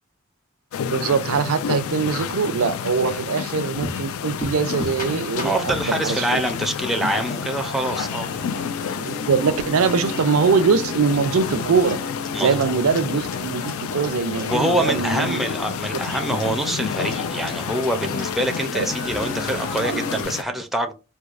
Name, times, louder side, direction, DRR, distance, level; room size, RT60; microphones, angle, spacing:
sound 1, 0.7-20.4, left 7 dB, 80° left, 0.3 m, -30 dB
voice 1, 0.8-6.2 8.9-12.0 12.4-15.5 15.9-16.0 18.7-18.9 19.8-20.0, right 5 dB, 85° right, 0.5 m, -22 dB
sound 2, 3.1-20.2, left 2 dB, 45° left, 1.6 m, -35 dB
sound 3, 5.0-6.9 8.0-10.1 10.5-13.4, left 2 dB, 65° left, 1.5 m, -45 dB
voice 2, 5.4-8.3 12.3-12.8 14.3-20.9, right 1 dB, ahead, 0.4 m, -25 dB
4.5 x 2.3 x 2.4 m
head